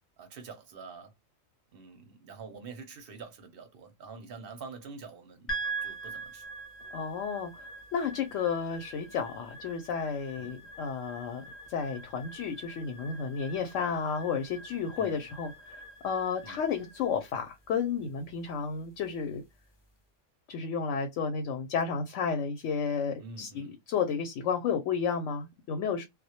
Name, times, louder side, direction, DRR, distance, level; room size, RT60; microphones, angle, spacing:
voice 1, 0.2-1.1 1.7-5.5 5.8-6.4 10.4-10.5 15.0-15.2 16.4-16.6 23.2-23.8, right 4 dB, 55° right, 0.7 m, -46 dB
sound 1, 5.5-19.9, right 3 dB, 30° left, 0.5 m, -44 dB
voice 2, 6.9-7.7 7.9-11.4 11.7-19.4 20.5-26.0, left 6 dB, 70° left, 0.9 m, -32 dB
2.2 x 2.1 x 2.7 m
omnidirectional pair, 1.4 m